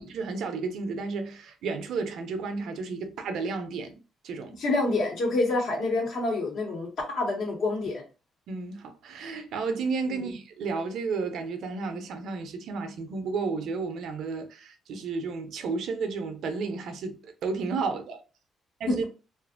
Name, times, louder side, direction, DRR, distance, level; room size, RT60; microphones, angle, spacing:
voice 1, 0.0-4.0 4.2-4.6 8.5-18.2 18.8-19.0, right 4 dB, 75° right, 0.5 m, -32 dB
voice 2, 4.6-8.0 10.1-10.3, left 2 dB, 70° left, 1.2 m, -27 dB
2.6 x 2.5 x 2.4 m
cardioid pair, 90°, 0 cm